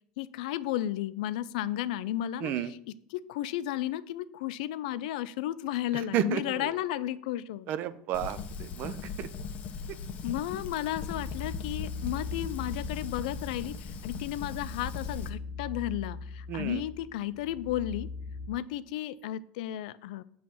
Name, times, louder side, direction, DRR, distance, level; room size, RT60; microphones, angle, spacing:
voice 1, 0.2-2.8 3.1-7.7 10.2-13.8 14.0-18.1 18.5-20.2, left 13 dB, 80° left, 15 dB, 0.3 m, -33 dB
voice 2, 2.4-2.7 6.1-6.7 7.7-9.3 16.5-16.8, right 10 dB, 45° right, 14 dB, 0.4 m, -32 dB
Fire, 8.1-15.3, left 5 dB, 35° left, 0.6 m, -39 dB
sound 1, 10.1-18.5, left 4 dB, 75° right, 1.4 m, -41 dB
6.8 x 3.1 x 5.8 m, 0.68 s
supercardioid pair, 145°, 4 cm